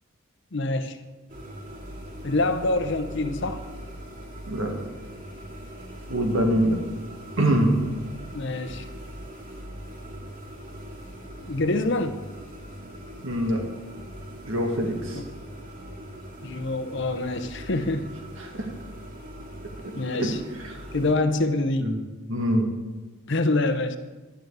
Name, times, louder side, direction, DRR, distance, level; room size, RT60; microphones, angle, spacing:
voice 1, 0.5-1.0 2.2-3.6 8.3-8.8 11.4-12.2 15.1-15.2 16.4-18.1 20.0-20.4 20.9-21.9 23.3-24.0, left 2 dB, 55° left, 9 dB, 0.8 m, -25 dB
sound 1, 1.3-21.1, equal, 40° right, 2.4 m, -41 dB
voice 2, 6.1-6.8 7.4-7.8 13.2-13.6 14.4-15.2 18.4-18.7 19.8-20.3 20.6-20.8 21.8-22.0 22.3-22.7, right 1 dB, 65° right, 2 dB, 1.9 m, -24 dB
11.5 x 9.3 x 4.8 m, 1.2 s
head